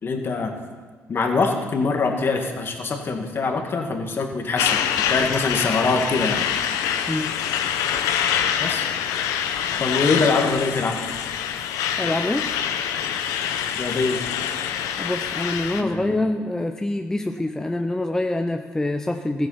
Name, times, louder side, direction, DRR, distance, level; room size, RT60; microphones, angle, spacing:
voice 1, 0.0-0.6 1.1-4.8 5.1-6.4 8.6-8.9 9.8-11.0 13.7-14.2 15.8-16.2, left 4 dB, 40° left, 3 dB, 1.9 m, -23 dB
Truck, 4.6-15.8, left 9 dB, 85° left, 0.8 m, -25 dB
voice 2, 12.0-12.5 15.0-19.5, left 1 dB, 10° left, 5 dB, 0.6 m, -25 dB
14.5 x 8.0 x 5.7 m, 1.5 s
cardioid pair, 85°, 6 cm